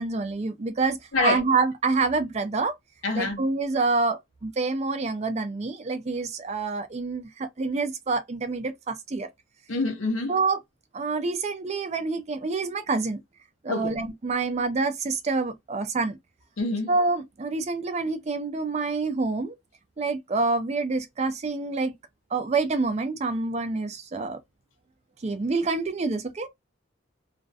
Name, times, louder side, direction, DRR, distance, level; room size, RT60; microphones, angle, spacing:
voice 1, 0.0-2.7 3.1-9.3 10.3-10.6 10.9-13.2 13.6-16.2 16.9-19.6 20.0-21.9 22.3-24.4 25.2-26.5, right 3 dB, 35° right, 0.4 m, -27 dB
voice 2, 3.0-3.4 9.7-10.3 13.7-14.0 16.6-16.9, left 3 dB, 90° left, 0.7 m, -26 dB
2.4 x 2.1 x 2.6 m
head